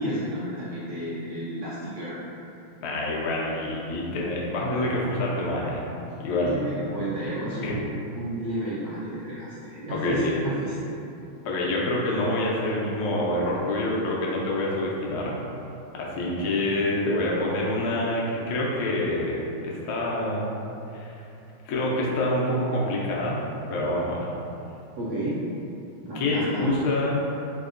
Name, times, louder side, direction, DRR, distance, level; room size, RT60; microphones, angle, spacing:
voice 1, 0.0-2.2 6.4-10.7 25.0-25.5 26.0-26.7, right 1 dB, 70° right, -9 dB, 1.1 m, -31 dB
voice 2, 2.8-5.8 6.2-6.6 7.2-7.4 7.6-7.7 9.9-10.3 11.4-15.4 15.9-20.5 20.9-21.2 21.7-23.4 23.7-24.3 26.1-27.2, left 1 dB, 80° left, -4 dB, 1.4 m, -26 dB
4.1 x 2.8 x 2.4 m, 2.8 s
omnidirectional pair, 2.2 m